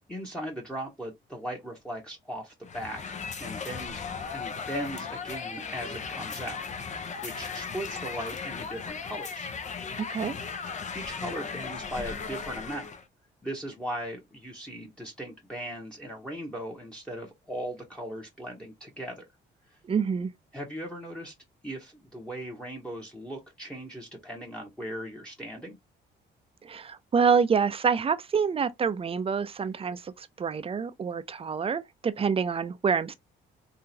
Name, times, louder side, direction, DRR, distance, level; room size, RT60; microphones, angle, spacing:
voice 1, 0.1-3.0 3.4-4.0 4.3-6.6 7.2-9.5 10.9-12.9 13.4-19.3 20.5-21.3 21.6-25.8, equal, 5° left, 1.0 m, -38 dB
sound 1, 2.6-13.0, left 5 dB, 35° left, 0.6 m, -37 dB
voice 2, 10.0-10.4 19.9-20.3 26.6-33.1, right 6 dB, 30° right, 0.5 m, -27 dB
3.7 x 2.4 x 2.8 m
cardioid pair, 90°, 20 cm